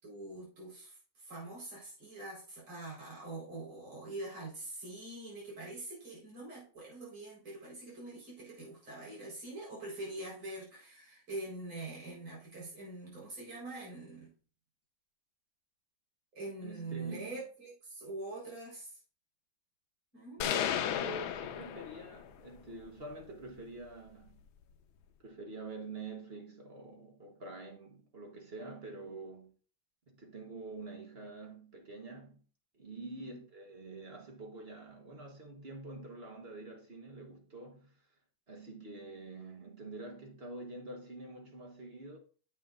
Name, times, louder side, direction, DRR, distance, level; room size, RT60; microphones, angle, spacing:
voice 1, 0.0-14.3 16.3-19.0 20.1-20.4 33.0-33.4, right 2 dB, 75° right, 5.2 m, -44 dB
voice 2, 16.6-17.4 20.4-24.4 25.2-29.5 30.1-32.4 32.7-38.0 38.5-42.2, right 2 dB, 35° right, 1.3 m, -47 dB
sound 1, 20.4-22.4, left 10 dB, 80° left, 1.5 m, -34 dB
9.1 x 7.8 x 2.5 m
omnidirectional pair, 2.2 m